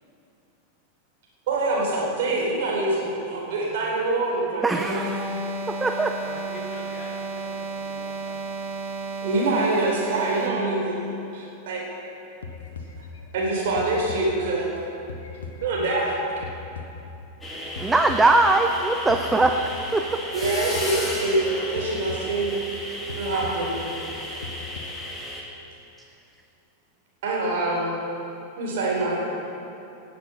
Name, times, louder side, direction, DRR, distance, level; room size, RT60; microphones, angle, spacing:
voice 1, 1.5-5.1 9.2-11.1 11.3-11.8 13.3-14.7 15.6-16.2 20.3-22.6 23.2-23.8 27.2-27.9 28.6-29.3, right 2 dB, 55° right, -3 dB, 3.8 m, -25 dB
voice 2, 4.6-5.2 5.8-6.1 17.8-19.6 19.9-20.2, right 2 dB, 10° right, 5 dB, 0.6 m, -20 dB
sound 1, 4.8-10.7, right 3 dB, 30° right, 2.0 m, -32 dB
voice 3, 6.2-8.4, left 1 dB, 35° left, -3 dB, 2.9 m, -43 dB
sound 2, 12.4-14.8 15.1-17.4 17.8-18.8 19.1-20.1 20.4-22.8 23.1-24.8, left 4 dB, 70° left, 1.2 m, -39 dB
sound 3, 17.4-25.4, left 1 dB, 10° left, 2.2 m, -34 dB
18.0 x 7.7 x 5.9 m, 2.8 s
figure-of-eight pair, 90°, 0 cm